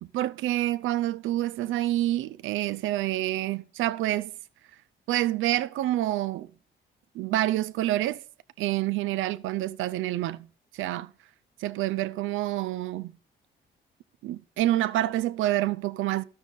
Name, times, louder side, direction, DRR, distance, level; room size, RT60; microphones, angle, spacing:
voice 1, 0.0-4.3 5.1-6.5 7.1-8.2 8.6-10.5 10.7-11.1 11.6-13.1 14.2-16.2, right 14 dB, 85° right, 0.4 m, -27 dB
12.0 x 6.2 x 3.8 m
cardioid pair, 90°, 20 cm